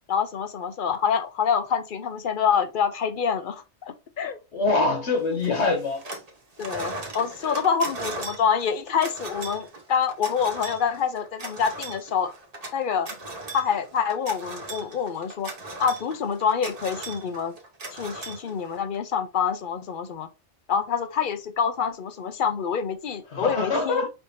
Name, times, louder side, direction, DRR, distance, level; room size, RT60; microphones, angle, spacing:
voice 1, 0.1-4.4 6.6-12.3 12.7-13.1 13.5-15.5 15.8-17.5 17.9-20.3 20.7-24.1, left 7 dB, 55° left, 0.7 m, -26 dB
voice 2, 4.5-6.0 7.4-7.6 23.3-24.1, left 3 dB, 70° left, 1.5 m, -24 dB
sound 1, 5.4-6.3 6.6-19.0, right 2 dB, 35° right, 1.0 m, -38 dB
5.4 x 3.4 x 2.6 m
omnidirectional pair, 1.2 m